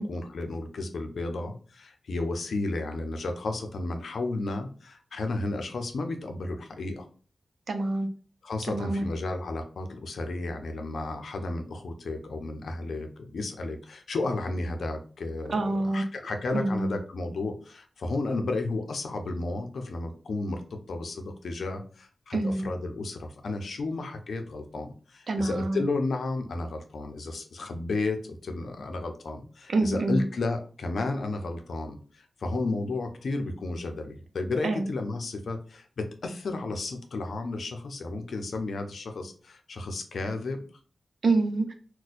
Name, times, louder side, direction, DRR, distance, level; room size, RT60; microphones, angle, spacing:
voice 1, 0.0-7.1 8.4-40.6, left 2 dB, 85° left, 5 dB, 0.6 m, -33 dB
voice 2, 7.7-8.1 8.7-9.0 15.5-16.0 16.5-17.0 22.3-22.7 25.3-25.8 29.7-30.2 34.6-34.9 41.2-41.7, right 2 dB, 65° right, 6 dB, 0.6 m, -26 dB
4.1 x 2.2 x 2.5 m, 0.39 s
wide cardioid pair, 145°, 0 cm